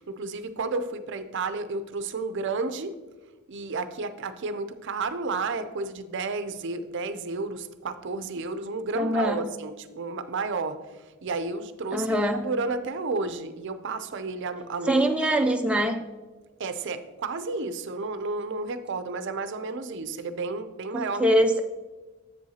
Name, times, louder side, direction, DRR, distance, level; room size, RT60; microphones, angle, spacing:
voice 1, 0.0-2.9 3.5-10.8 11.2-15.1 16.6-21.3, right 3 dB, 55° right, 10 dB, 0.5 m, -32 dB
voice 2, 8.9-9.5 11.9-12.5 14.9-16.0 20.9-21.6, equal, 5° right, 3 dB, 0.3 m, -23 dB
7.8 x 7.6 x 2.8 m, 1.2 s
head